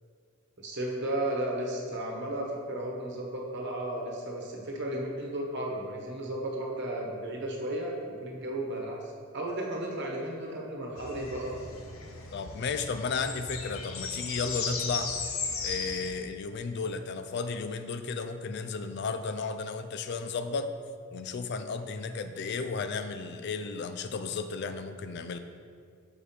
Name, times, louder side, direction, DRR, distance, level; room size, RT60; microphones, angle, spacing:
voice 1, 0.6-11.5, right 1 dB, 55° right, -1 dB, 1.2 m, -34 dB
sound 1, 11.0-16.1, left 5 dB, 85° left, 0.8 m, -36 dB
voice 2, 12.3-15.1 15.6-20.7 21.1-25.4, left 4 dB, 55° left, 9 dB, 0.4 m, -34 dB
7.0 x 4.8 x 4.3 m, 2.1 s
head